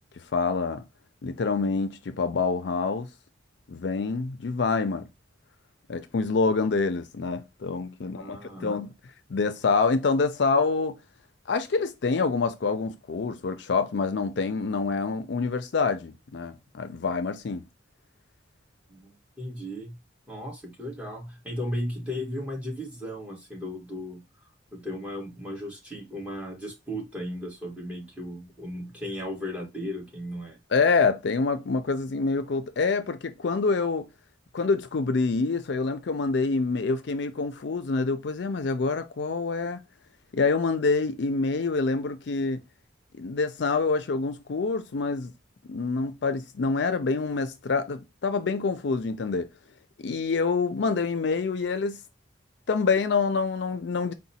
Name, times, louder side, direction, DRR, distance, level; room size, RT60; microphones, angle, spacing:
voice 1, 0.3-0.9 1.2-3.1 3.7-5.1 5.9-8.9 9.3-11.0 11.5-17.6 30.7-34.1 34.5-39.8 40.3-42.6 43.1-45.3 45.7-49.5 50.0-52.0 52.7-54.1, left 4 dB, 60° left, 0.4 m, -26 dB
voice 2, 8.0-8.7 18.9-19.1 19.4-19.9 20.3-24.2 24.7-30.6, equal, 5° right, 1.4 m, -35 dB
4.9 x 2.2 x 4.1 m
head